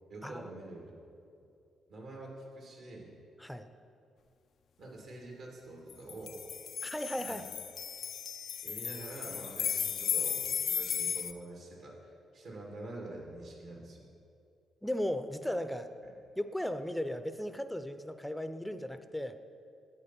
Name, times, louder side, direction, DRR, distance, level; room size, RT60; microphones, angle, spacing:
voice 1, 0.1-0.9 1.9-3.1 4.8-6.4 7.2-7.5 8.6-14.1 16.0-16.1, right 2 dB, 75° right, -1 dB, 2.1 m, -46 dB
sound 1, 5.9-11.3, left 8 dB, 65° left, 0.4 m, -35 dB
voice 2, 6.8-7.4 14.8-15.9 16.4-19.4, equal, 5° left, 10 dB, 0.6 m, -36 dB
9.9 x 8.2 x 4.3 m, 2.5 s
supercardioid pair, 60°, 0 cm